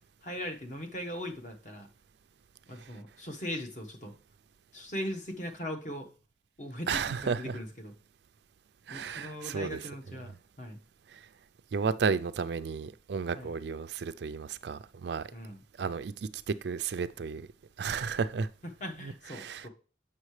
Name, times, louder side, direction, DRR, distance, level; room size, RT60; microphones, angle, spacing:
voice 1, 0.2-1.9 2.7-4.1 4.7-6.1 6.6-7.9 8.9-10.8 13.4-13.5 15.3-15.6 18.6-19.7, equal, 40° left, 1.1 m, -39 dB
voice 2, 6.9-7.5 8.9-9.8 11.7-15.3 15.8-16.1 16.5-17.4 17.8-18.5 19.0-19.7, right 5 dB, 70° right, 0.4 m, -33 dB
7.5 x 5.6 x 3.2 m
head